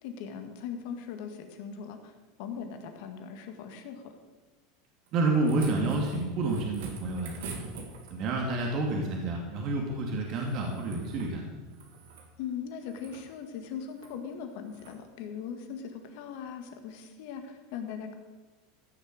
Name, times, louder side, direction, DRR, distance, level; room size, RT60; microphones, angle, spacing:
voice 1, 0.0-4.1 12.4-18.1, left 7 dB, 65° left, 6 dB, 1.9 m, -40 dB
voice 2, 5.1-7.7 8.1-11.5, right 2 dB, 50° right, 0 dB, 2.5 m, -29 dB
sound 1, 5.1-8.4 10.3-11.3 11.7-12.3 12.8-13.2 13.9-14.1 14.7-15.0 16.3-16.4, right 4 dB, 75° right, 2.3 m, -44 dB
14.5 x 6.9 x 6.6 m, 1.3 s
hypercardioid pair, 100°, 0 cm